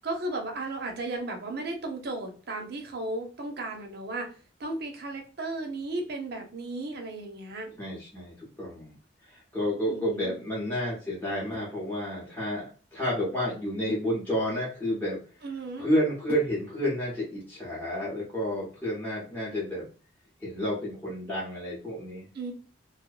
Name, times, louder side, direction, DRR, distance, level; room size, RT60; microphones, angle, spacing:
voice 1, 0.0-4.3 4.6-7.7 9.9-10.4 15.4-15.9 22.3-22.5, right 2 dB, 55° right, 2 dB, 0.6 m, -35 dB
voice 2, 7.8-9.0 9.5-15.2 15.8-19.9 20.4-22.3, equal, 10° left, -8 dB, 0.8 m, -30 dB
2.6 x 2.1 x 2.3 m, 0.37 s
head